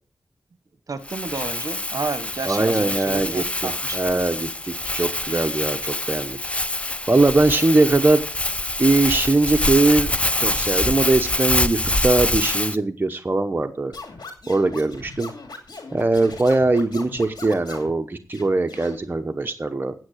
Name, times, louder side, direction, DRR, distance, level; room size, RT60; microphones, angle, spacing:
voice 1, 0.9-4.0, right 4 dB, 55° right, 12 dB, 1.2 m, -31 dB
Crumpling crinkling, 1.1-12.8, left 1 dB, 15° left, 0.6 m, -25 dB
voice 2, 2.4-6.4 7.1-8.2 8.8-13.9 14.5-15.3 15.9-19.9, right 2 dB, 30° right, 6 dB, 1.0 m, -21 dB
Scratching (performance technique), 13.9-17.9 18.3-19.0, left 3 dB, 90° left, 2.8 m, -39 dB
9.5 x 8.2 x 6.4 m, 0.39 s
wide cardioid pair, 75°, 7 cm